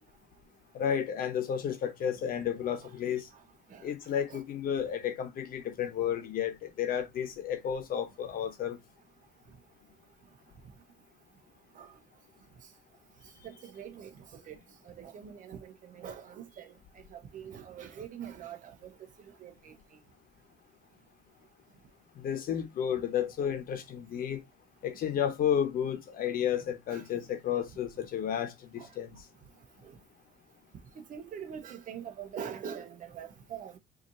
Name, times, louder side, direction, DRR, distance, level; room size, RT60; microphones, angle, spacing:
voice 1, 0.7-3.3 3.8-8.8 22.2-24.4 24.8-29.2, left 9 dB, 60° left, 1.1 m, -32 dB
voice 2, 2.8-3.2 3.7-3.8 4.3-4.4 11.7-11.9 13.4-14.6 14.8-16.7 17.1-18.9 19.4-19.7 26.9-27.1 28.8-28.9 29.8-30.0 31.0-33.8, right 8 dB, 50° right, 0.9 m, -44 dB
4.2 x 2.8 x 2.6 m
cardioid pair, 110°, 17 cm